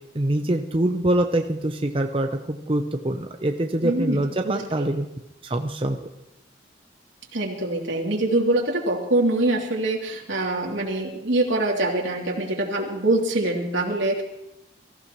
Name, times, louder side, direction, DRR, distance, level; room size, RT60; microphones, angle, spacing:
voice 1, 0.1-5.1 5.4-6.0, right 1 dB, 30° right, 4 dB, 0.7 m, -24 dB
voice 2, 3.8-4.2 4.8-4.9 7.3-14.2, right 2 dB, 90° right, -1 dB, 3.0 m, -24 dB
23.5 x 15.0 x 3.1 m, 0.90 s
head